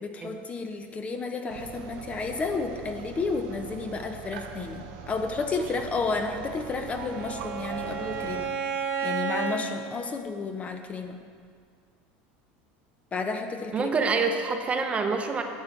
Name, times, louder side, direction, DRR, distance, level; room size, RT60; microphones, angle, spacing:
voice 1, 0.0-8.5 9.0-11.2 13.1-13.9, left 4 dB, 25° left, 6 dB, 0.6 m, -32 dB
sound 1, 1.5-8.5, right 6 dB, 80° right, 0.7 m, -41 dB
Bowed string instrument, 6.4-9.6, right 6 dB, 50° right, 1.0 m, -32 dB
voice 2, 13.7-15.4, right 4 dB, 25° right, 5 dB, 0.7 m, -26 dB
12.0 x 7.3 x 3.2 m, 2.1 s
supercardioid pair, 120°, 5 cm